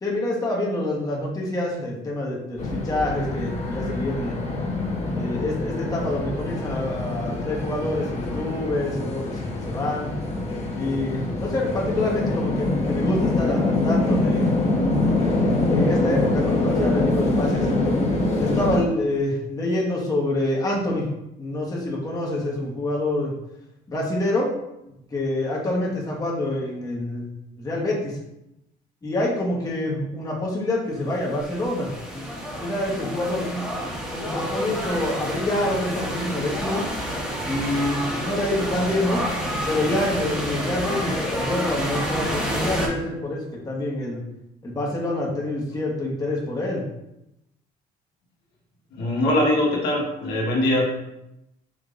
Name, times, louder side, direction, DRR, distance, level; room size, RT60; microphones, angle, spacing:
voice 1, 0.0-4.4 5.1-9.4 9.6-10.1 10.7-14.5 15.0-17.7 18.4-21.1 21.4-23.3 23.9-24.5 25.1-27.3 27.6-28.2 29.0-32.2 32.6-33.7 34.1-36.9 37.5-39.3 39.7-44.2 44.6-46.8, left 1 dB, 20° left, -4 dB, 1.2 m, -26 dB
sound 1, 2.6-18.8, left 2 dB, 40° left, 1.0 m, -24 dB
sound 2, 31.0-42.9, equal, 5° right, 1.2 m, -29 dB
voice 2, 49.0-50.9, left 1 dB, 80° left, -3 dB, 1.4 m, -22 dB
4.9 x 3.4 x 2.5 m, 0.86 s
cardioid pair, 110°, 17 cm